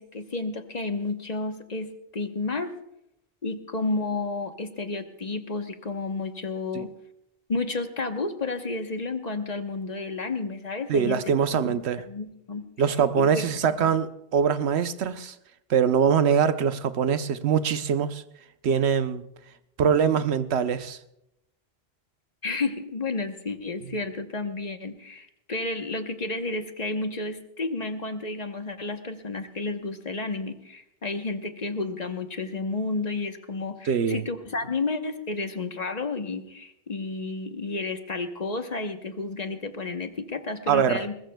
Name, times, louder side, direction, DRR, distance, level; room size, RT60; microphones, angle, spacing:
voice 1, 0.0-1.9 2.1-2.7 3.4-6.9 7.5-11.2 11.6-12.6 13.2-13.9 22.4-41.1, left 3 dB, 40° left, 7 dB, 1.1 m, -31 dB
voice 2, 10.9-12.0 12.8-15.3 15.7-18.2 18.6-19.2 19.8-21.0 33.9-34.2 40.7-41.0, right 7 dB, 85° right, 12 dB, 1.0 m, -23 dB
20.5 x 20.5 x 2.2 m, 0.82 s
omnidirectional pair, 1.1 m